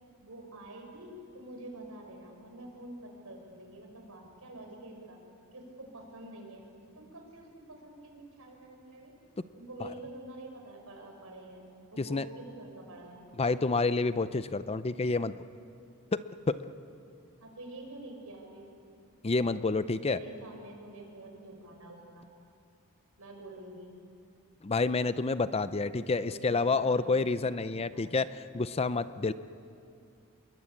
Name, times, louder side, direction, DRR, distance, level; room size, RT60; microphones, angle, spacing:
voice 1, 0.2-5.2 5.5-6.6 6.9-9.1 9.5-11.6 11.9-13.2 17.4-18.7 20.0-22.3 23.2-23.9 26.2-28.1, right 1 dB, 70° right, 2 dB, 5.9 m, -47 dB
voice 2, 13.4-15.4 16.1-16.2 16.5-16.6 19.2-20.2 24.6-29.3, left 3 dB, 25° left, 13 dB, 0.5 m, -29 dB
27.5 x 22.5 x 8.6 m, 2.5 s
head